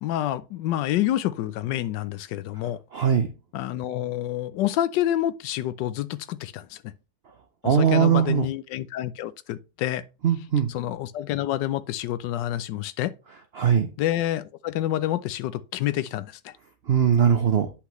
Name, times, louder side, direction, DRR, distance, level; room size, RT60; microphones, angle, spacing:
voice 1, 0.0-2.8 3.5-6.8 7.6-10.0 10.7-13.1 14.0-16.5, left 13 dB, 85° left, 1.3 m, -28 dB
voice 2, 2.9-3.3 7.6-8.5 10.2-10.7 13.6-13.9 16.9-17.7, right 8 dB, 70° right, 0.5 m, -20 dB
8.5 x 5.8 x 3.1 m
omnidirectional pair, 1.9 m